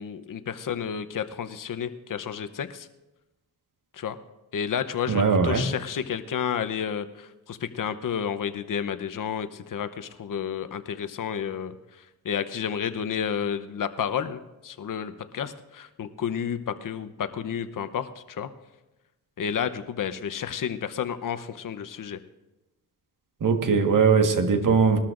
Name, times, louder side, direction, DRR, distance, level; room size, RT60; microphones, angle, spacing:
voice 1, 0.0-2.9 3.9-4.2 4.5-18.5 19.4-22.2, left 8 dB, 55° left, 11 dB, 0.9 m, -31 dB
voice 2, 5.1-5.6 23.4-25.0, right 5 dB, 55° right, 5 dB, 1.6 m, -20 dB
21.0 x 13.0 x 2.6 m, 1.0 s
cardioid pair, 90°, 38 cm